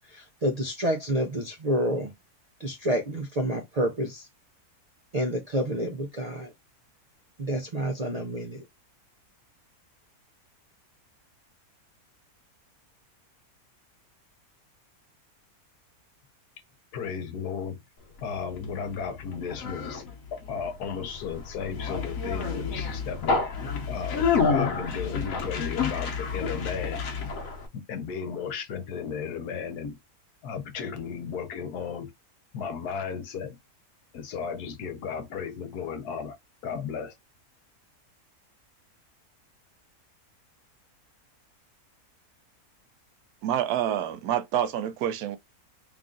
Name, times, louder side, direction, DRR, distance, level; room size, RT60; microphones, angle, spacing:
voice 1, 0.1-2.1 2.6-4.3 5.1-6.5 7.4-8.6, right 1 dB, 70° right, 0.3 m, -28 dB
voice 2, 16.9-17.8 18.2-20.0 20.3-23.6 23.9-27.0 27.7-30.0 30.4-32.1 32.5-33.6 34.1-36.4 36.6-37.1, left 6 dB, 90° left, 1.4 m, -34 dB
Conversation, 18.2-27.7, left 5 dB, 65° left, 1.2 m, -29 dB
voice 3, 43.4-45.4, right 10 dB, 85° right, 1.1 m, -27 dB
3.5 x 2.4 x 3.7 m
omnidirectional pair, 1.6 m